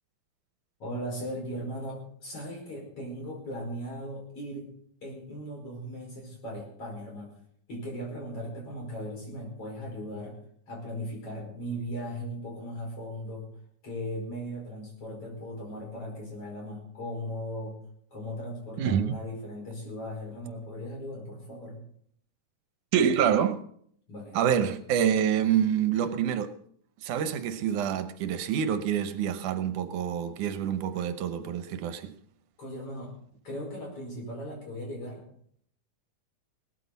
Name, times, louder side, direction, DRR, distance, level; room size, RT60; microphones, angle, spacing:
voice 1, 0.8-4.7 5.0-7.4 7.7-10.4 10.7-13.5 13.8-17.8 18.1-21.8 24.1-24.4 32.6-33.2 33.4-35.2, equal, 50° left, 6.2 m, -38 dB
voice 2, 18.8-19.1 22.9-23.6 24.3-26.5 27.0-32.1, right 8 dB, 80° right, 2.4 m, -27 dB
18.5 x 14.0 x 4.1 m
omnidirectional pair, 3.5 m